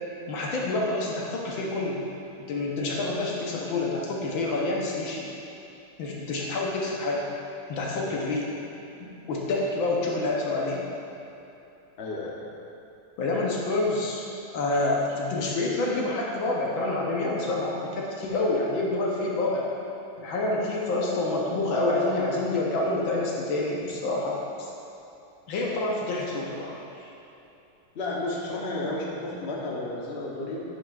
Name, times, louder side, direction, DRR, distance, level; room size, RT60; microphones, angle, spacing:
voice 1, 0.3-2.0 2.4-5.3 6.0-7.3 7.7-8.5 9.0-10.8 13.2-14.2 14.5-19.7 20.2-24.7 25.5-27.1, left 2 dB, 70° left, -3 dB, 1.6 m, -27 dB
voice 2, 12.0-12.4 27.9-30.6, left 2 dB, 40° left, -4 dB, 0.9 m, -32 dB
9.1 x 7.8 x 2.5 m, 3.0 s
omnidirectional pair, 2.3 m